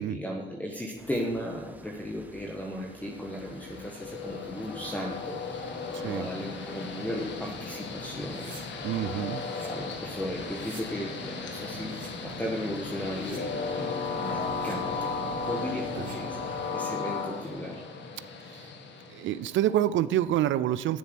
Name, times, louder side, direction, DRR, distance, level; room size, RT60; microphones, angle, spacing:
voice 1, 0.0-17.8, equal, 10° left, 0 dB, 1.3 m, -36 dB
sound 1, 1.0-16.7, right 1 dB, 10° right, 1.1 m, -51 dB
Train, 3.0-19.8, left 4 dB, 65° left, 1.7 m, -36 dB
voice 2, 5.9-6.3 8.8-9.4 16.0-16.1 18.5-18.7 19.1-21.0, right 12 dB, 75° right, 15 dB, 0.5 m, -27 dB
sound 2, 8.1-8.6 9.2-9.7 10.3-10.8 11.4-12.1 12.8-13.4 14.1-14.8 15.5-16.2 16.8-17.5, right 4 dB, 40° right, 2.9 m, -52 dB
10.0 x 7.3 x 6.1 m, 1.0 s
cardioid pair, 90°, 20 cm